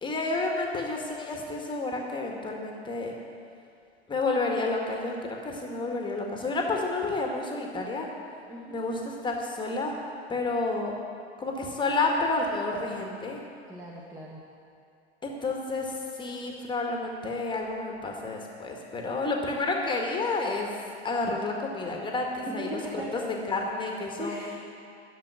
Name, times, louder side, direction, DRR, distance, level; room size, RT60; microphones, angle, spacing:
voice 1, 0.0-3.1 4.1-8.1 8.7-9.9 10.3-10.9 11.4-13.4 15.2-20.7 21.0-22.8 23.1-23.2 23.5-24.6, left 3 dB, 15° left, 0 dB, 1.7 m, -30 dB
voice 2, 8.5-8.8 13.7-14.5 22.4-23.2 24.2-24.6, right 1 dB, 10° right, -3 dB, 1.4 m, -38 dB
12.0 x 7.2 x 9.4 m, 2.5 s
figure-of-eight pair, 95°, 34 cm